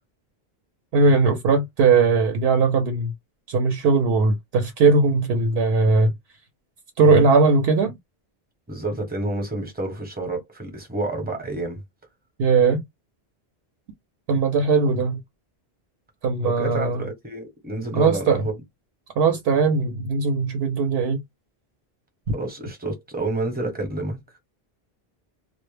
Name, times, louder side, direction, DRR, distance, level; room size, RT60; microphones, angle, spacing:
voice 1, 0.9-3.1 3.5-6.1 7.0-7.9 12.4-12.8 14.3-15.2 16.2-17.0 17.9-18.5 19.2-21.2, right 4 dB, 75° right, 0.8 m, -19 dB
voice 2, 8.7-11.8 16.4-18.6 22.3-24.2, right 2 dB, 10° right, 0.8 m, -29 dB
2.0 x 2.0 x 3.1 m
omnidirectional pair, 1.0 m